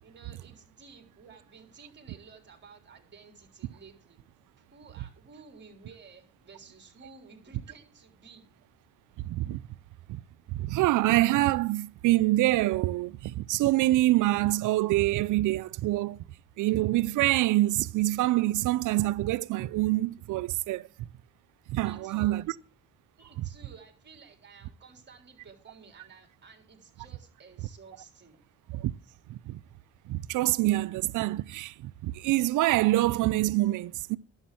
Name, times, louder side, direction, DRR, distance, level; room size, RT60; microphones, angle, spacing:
voice 1, 0.0-4.2 4.6-8.5 21.8-22.5 23.2-28.4, right 5 dB, 35° right, 3.7 m, -53 dB
voice 2, 9.2-9.6 10.1-10.2 10.5-16.2 16.6-21.1 21.7-22.4 28.7-28.9 29.3-29.6 30.1-34.2, right 17 dB, 80° right, 0.6 m, -26 dB
11.5 x 7.2 x 7.6 m
cardioid pair, 90°, 30 cm